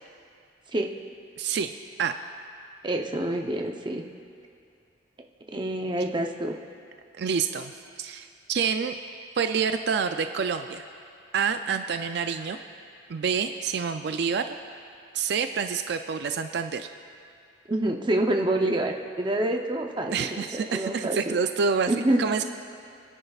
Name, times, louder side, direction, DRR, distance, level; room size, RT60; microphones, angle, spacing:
voice 1, 1.4-1.7 2.0-2.2 7.2-7.7 8.0-8.9 9.4-10.8 11.3-12.6 13.1-14.6 15.1-16.9 20.1-21.9 22.2-22.4, right 6 dB, 60° right, 8 dB, 0.4 m, -27 dB
voice 2, 2.8-4.0 5.5-6.5 17.7-21.3 21.9-22.2, right 1 dB, 25° right, 2 dB, 0.7 m, -27 dB
30.0 x 10.0 x 2.4 m, 2.4 s
head